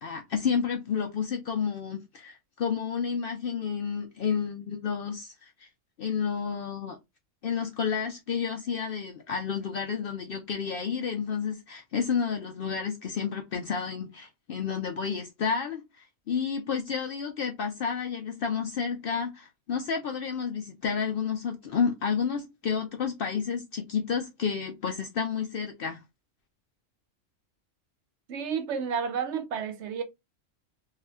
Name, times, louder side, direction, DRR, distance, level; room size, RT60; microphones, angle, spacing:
voice 1, 0.0-5.7 6.0-7.0 7.4-26.0, left 6 dB, 60° left, 0.6 m, -30 dB
voice 2, 28.3-30.0, right 6 dB, 65° right, 0.8 m, -31 dB
2.7 x 2.4 x 3.3 m
omnidirectional pair, 1.3 m